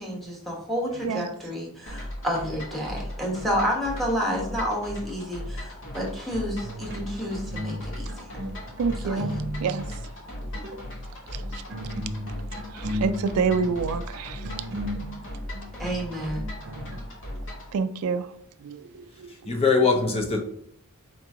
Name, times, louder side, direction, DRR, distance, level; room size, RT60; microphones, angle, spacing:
voice 1, 0.0-8.4 9.0-9.3 15.8-16.4, equal, ahead, -3 dB, 1.1 m, -30 dB
sound 1, 1.9-17.7, left 1 dB, 55° left, 1.2 m, -37 dB
sound 2, 6.3-7.8 8.1-9.9 10.4-10.8 11.4-17.0, equal, 50° right, 0.7 m, -36 dB
voice 2, 8.8-9.3 9.6-10.0 11.3-11.4 12.7-14.5 17.7-18.3 18.6-19.3, right 5 dB, 70° right, 11 dB, 0.3 m, -28 dB
voice 3, 19.3-20.4, left 4 dB, 25° left, 2 dB, 0.5 m, -22 dB
4.4 x 3.0 x 3.6 m, 0.69 s
head